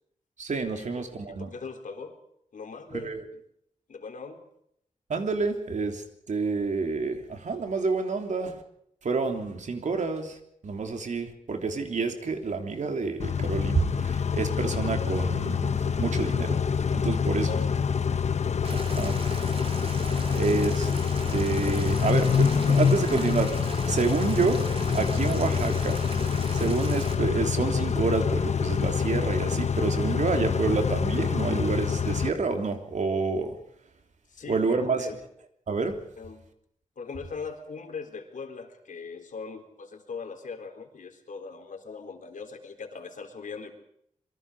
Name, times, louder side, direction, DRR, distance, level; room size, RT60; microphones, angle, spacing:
voice 1, 0.4-1.5 2.9-3.2 5.1-8.6 9.0-10.4 10.6-16.6 16.9-17.5 18.8-19.3 20.3-20.9 21.3-23.6 23.9-24.6 24.9-26.0 26.5-33.5 34.5-35.1 35.7-36.0, right 4 dB, 65° right, 5 dB, 3.4 m, -28 dB
voice 2, 1.3-2.2 2.5-3.1 3.9-4.5 17.5-17.9 18.3-19.2 20.1-20.5 25.3-25.6 34.3-35.2 36.2-36.4 37.0-43.7, left 5 dB, 75° left, 5 dB, 4.0 m, -40 dB
Car / Idling / Accelerating revving vroom, 13.2-32.3, left 6 dB, 60° left, 1.1 m, -26 dB
Boiling, 18.6-27.1, right 3 dB, 45° right, 3.0 m, -39 dB
26.0 x 24.0 x 5.0 m, 0.71 s
wide cardioid pair, 155°, 13 cm